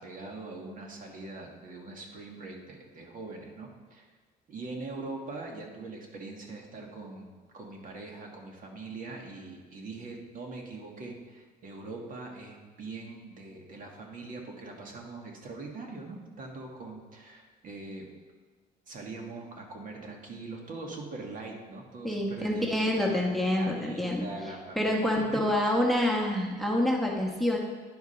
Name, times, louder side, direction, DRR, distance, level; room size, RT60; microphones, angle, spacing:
voice 1, 0.0-4.1 4.5-18.1 18.9-25.8, right 3 dB, 55° right, 1 dB, 1.8 m, -42 dB
voice 2, 22.0-24.2 24.8-27.6, left 1 dB, ahead, -1 dB, 1.1 m, -27 dB
10.5 x 4.7 x 5.7 m, 1.4 s
cardioid pair, 110°, 17 cm